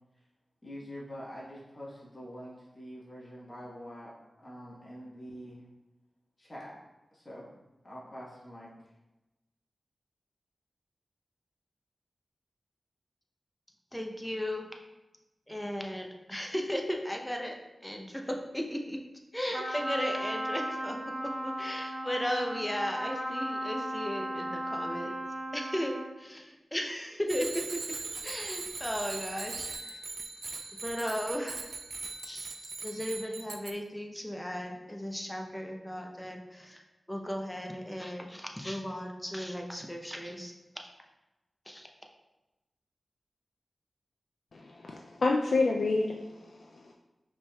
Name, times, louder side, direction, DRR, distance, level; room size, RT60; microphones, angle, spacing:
voice 1, 0.6-4.1 4.4-5.6 6.4-6.7 7.1-7.5 7.8-8.9, equal, 30° left, -6 dB, 1.1 m, -45 dB
voice 2, 13.9-14.7 15.5-19.0 19.3-21.0 21.2-25.1 25.5-30.0 30.8-31.7 32.2-32.5 32.8-40.5 41.7-41.9, equal, 5° left, 2 dB, 0.6 m, -36 dB
Trumpet, 19.5-26.2, right 1 dB, 55° right, 1.1 m, -36 dB
Bicycle bell, 27.3-33.7, right 4 dB, 75° right, 0.4 m, -40 dB
voice 3, 44.5-46.2 46.7-46.9, left 3 dB, 70° left, 0 dB, 0.3 m, -28 dB
5.1 x 3.4 x 2.2 m, 1.0 s
cardioid pair, 60°, 0 cm